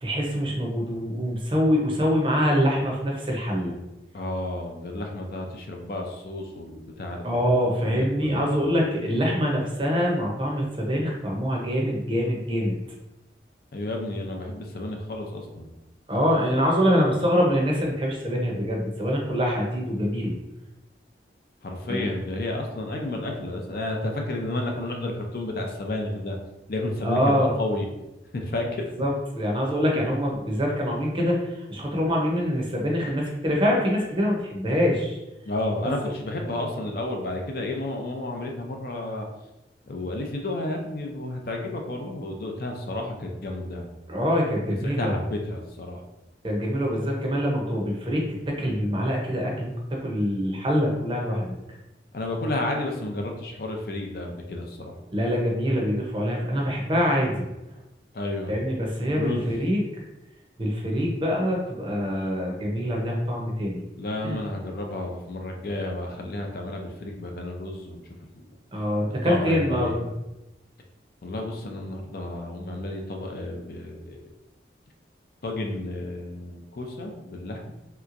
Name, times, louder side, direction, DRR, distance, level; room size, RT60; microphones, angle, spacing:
voice 1, 0.0-3.8 7.2-12.8 16.1-20.3 21.9-22.1 27.0-27.5 29.0-35.2 44.1-45.1 46.4-51.6 55.1-57.4 58.5-59.8 60.6-63.8 64.2-64.4 68.7-70.1, equal, 30° right, -1 dB, 0.6 m, -25 dB
voice 2, 4.1-7.5 7.8-8.7 13.7-15.7 21.6-26.4 26.7-27.9 28.3-28.6 35.5-39.3 39.9-43.8 44.8-46.0 52.1-55.0 58.1-58.5 59.0-59.6 62.1-62.4 64.0-68.0 68.3-68.5 69.2-70.0 71.2-74.3 75.4-77.7, left 1 dB, 55° left, 2 dB, 0.5 m, -31 dB
3.3 x 2.9 x 2.5 m, 0.97 s
head